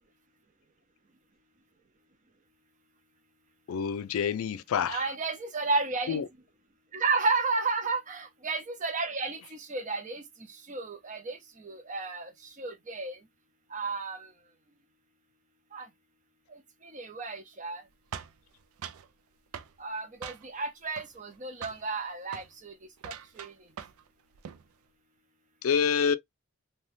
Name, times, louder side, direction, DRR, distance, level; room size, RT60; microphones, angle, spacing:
voice 1, 3.7-5.1 6.1-6.3 25.6-26.2, left 7 dB, 75° left, 0.3 m, -27 dB
voice 2, 4.9-6.2 6.9-10.2 10.7-12.3 12.6-13.2 13.7-14.3 15.7-15.9 16.9-17.8 19.8-22.7 23.0-23.5, right 3 dB, 35° right, 0.5 m, -32 dB
sound 1, 18.1-19.1 19.5-19.8 20.2-20.7 21.0-21.4 21.6-21.9 22.3-22.5 23.0-24.1 24.3-24.7, right 8 dB, 85° right, 0.4 m, -42 dB
2.6 x 2.2 x 3.2 m
head